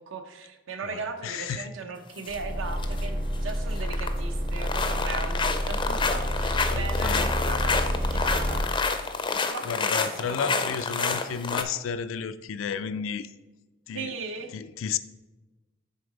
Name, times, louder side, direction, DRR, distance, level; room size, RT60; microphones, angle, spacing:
voice 1, 0.0-8.7 9.3-11.3 13.9-14.5, right 4 dB, 80° right, 0.8 m, -38 dB
voice 2, 0.8-1.7 6.7-7.3 9.7-13.3 13.9-14.1 14.5-15.0, left 6 dB, 85° left, 0.4 m, -32 dB
sound 1, 2.2-2.4 2.7-3.0 3.3-4.2 4.5-11.6, left 4 dB, 25° left, 0.4 m, -28 dB
sound 2, 2.3-8.6, equal, 50° right, 0.9 m, -29 dB
6.7 x 3.9 x 5.1 m
head